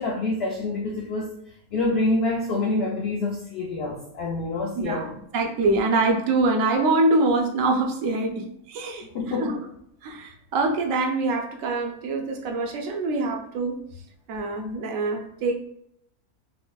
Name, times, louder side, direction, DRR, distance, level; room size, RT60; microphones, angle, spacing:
voice 1, 0.0-1.3 1.7-5.1 9.0-9.6, left 2 dB, 60° left, -2 dB, 0.7 m, -27 dB
voice 2, 4.8-5.1 5.3-9.1 9.4-9.6 10.0-13.8 14.3-15.7, right 2 dB, 70° right, 2 dB, 1.0 m, -24 dB
5.7 x 2.1 x 2.3 m, 0.74 s
omnidirectional pair, 1.5 m